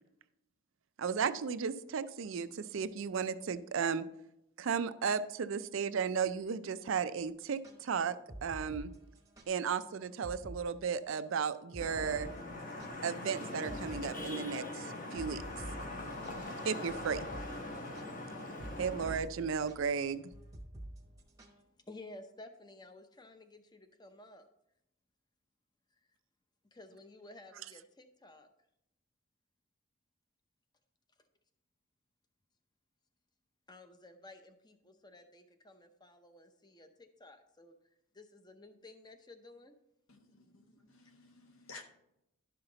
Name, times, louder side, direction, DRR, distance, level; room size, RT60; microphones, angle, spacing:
voice 1, 1.0-4.0 4.6-8.2 8.4-8.9 9.5-12.3 13.0-15.4 16.6-17.3 18.8-20.2, right 6 dB, 60° right, 13 dB, 0.4 m, -34 dB
sound 1, 7.5-9.5 9.8-9.9 10.2-10.6 10.9-13.3 13.7-14.0 14.3-21.6, right 1 dB, 15° right, 0.9 m, -48 dB
Vehicle horn car horn honking / Traffic noise roadway noise, 11.8-19.2, left 2 dB, 40° left, 1.2 m, -42 dB
voice 2, 21.4-24.5 26.7-28.5 33.7-37.7 38.1-39.7, left 2 dB, 20° left, 8 dB, 0.7 m, -54 dB
voice 3, 40.1-41.8, left 3 dB, 70° left, 5 dB, 1.1 m, -54 dB
11.5 x 5.7 x 3.9 m, 0.83 s
head